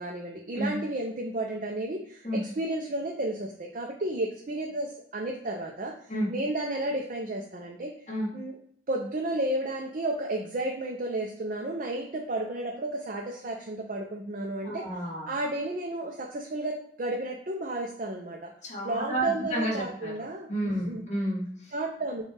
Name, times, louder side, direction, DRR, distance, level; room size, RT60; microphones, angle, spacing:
voice 1, 0.0-5.9 6.3-7.9 8.3-8.6 8.9-14.9 15.2-18.5 18.8-21.0 21.7-22.2, right 1 dB, 45° right, 0 dB, 0.5 m, -32 dB
voice 2, 14.6-15.3 18.6-20.1 20.5-21.7, right 1 dB, 35° left, -4 dB, 1.4 m, -31 dB
6.4 x 2.3 x 3.2 m, 0.65 s
head